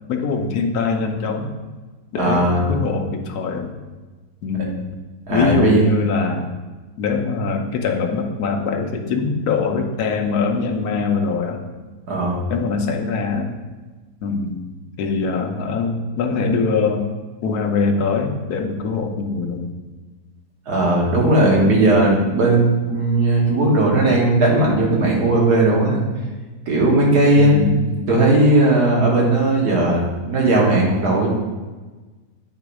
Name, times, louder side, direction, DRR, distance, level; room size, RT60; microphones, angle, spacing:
voice 1, 0.1-1.5 2.1-3.7 4.4-4.9 5.3-6.5 7.0-11.6 12.5-13.5 14.2-14.7 15.0-17.1 17.4-19.7 27.4-28.1, left 4 dB, 75° left, 3 dB, 1.2 m, -22 dB
voice 2, 2.2-2.7 5.3-5.8 12.1-12.4 20.7-26.0 26.7-27.5 28.1-31.3, right 2 dB, 80° right, -3 dB, 1.9 m, -17 dB
8.3 x 3.1 x 4.7 m, 1.3 s
omnidirectional pair, 1.7 m